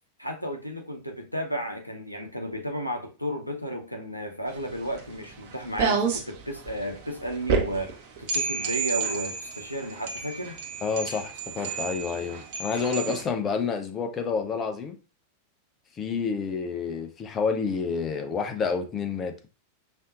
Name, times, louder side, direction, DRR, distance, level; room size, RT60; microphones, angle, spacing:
voice 1, 0.2-10.6, equal, 90° left, 0.7 m, -33 dB
sound 1, 4.5-13.2, right 5 dB, 45° right, 1.0 m, -31 dB
voice 2, 10.8-15.0 16.0-19.3, left 5 dB, 25° left, 0.7 m, -29 dB
5.3 x 2.8 x 2.5 m
figure-of-eight pair, 90°, 0 cm